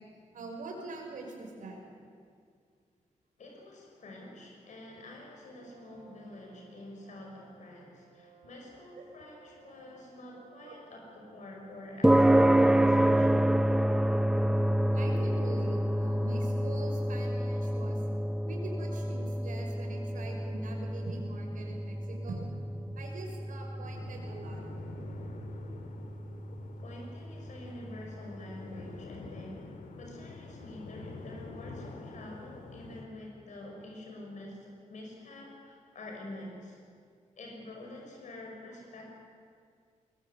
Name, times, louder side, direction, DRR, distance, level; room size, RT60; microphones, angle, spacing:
voice 1, 0.3-1.8 8.9-9.0 10.6-10.7 14.9-18.0 18.5-22.5 23.0-24.6, right 2 dB, 90° right, 1 dB, 5.4 m, -43 dB
voice 2, 3.4-13.5 26.8-36.8 37.4-39.1, left 1 dB, 65° left, 0 dB, 6.0 m, -47 dB
Brass instrument, 5.5-13.3, right 9 dB, 60° right, 3.5 m, -60 dB
sound 1, 12.0-28.5, right 1 dB, 5° right, 0.6 m, -28 dB
sound 2, 23.8-33.1, left 3 dB, 85° left, 2.4 m, -47 dB
22.0 x 21.0 x 8.4 m, 2.1 s
wide cardioid pair, 155°, 13 cm